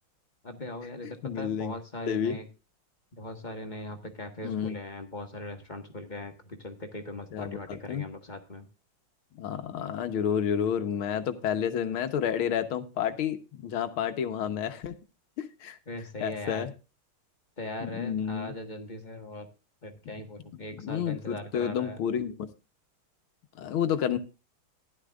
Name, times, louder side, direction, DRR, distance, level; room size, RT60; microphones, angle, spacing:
voice 1, 0.4-2.5 3.1-8.6 15.9-16.7 17.6-19.5 19.8-22.0, left 1 dB, 25° left, 4 dB, 1.5 m, -40 dB
voice 2, 1.0-1.7 2.1-2.4 4.4-4.8 7.3-8.0 9.3-14.9 15.4-15.8 16.2-16.7 17.8-18.5 20.1-20.2 20.7-22.4 23.6-24.2, left 8 dB, 85° left, 9 dB, 1.9 m, -30 dB
15.0 x 11.5 x 2.4 m, 0.30 s
omnidirectional pair, 2.2 m